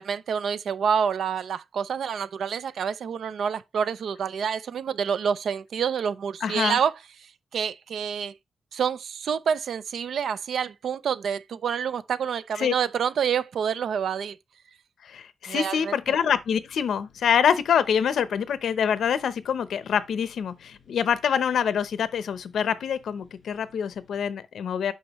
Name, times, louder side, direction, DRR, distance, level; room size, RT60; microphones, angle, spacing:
voice 1, 0.0-6.9 7.5-8.3 8.7-14.4 15.5-15.9, right 7 dB, 70° right, 0.5 m, -27 dB
voice 2, 6.4-6.8 12.6-12.7 15.0-24.9, left 8 dB, 80° left, 0.7 m, -25 dB
sound 1, 16.0-24.3, left 6 dB, 40° left, 4.7 m, -59 dB
8.6 x 5.7 x 3.0 m
wide cardioid pair, 170°, 0 cm